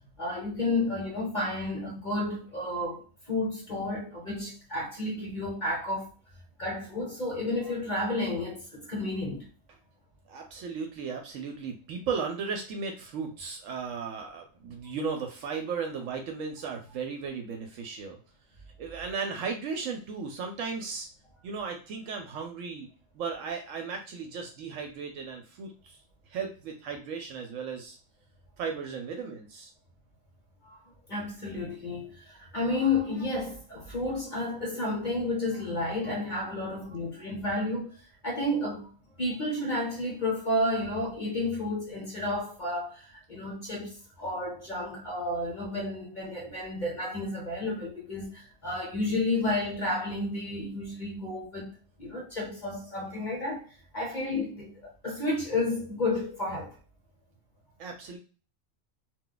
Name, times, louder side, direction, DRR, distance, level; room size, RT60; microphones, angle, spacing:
voice 1, 0.2-6.1 6.6-9.4 30.6-30.8 31.1-37.9 38.2-38.9 39.2-51.7 52.0-53.6 53.9-56.7, left 2 dB, 40° left, 1.0 m, -31 dB
voice 2, 10.3-18.2 18.8-21.1 21.4-22.9 23.1-26.0 26.3-28.0 28.6-29.7 57.8-58.2, right 5 dB, 80° right, 1.0 m, -35 dB
2.4 x 2.2 x 3.8 m
omnidirectional pair, 1.3 m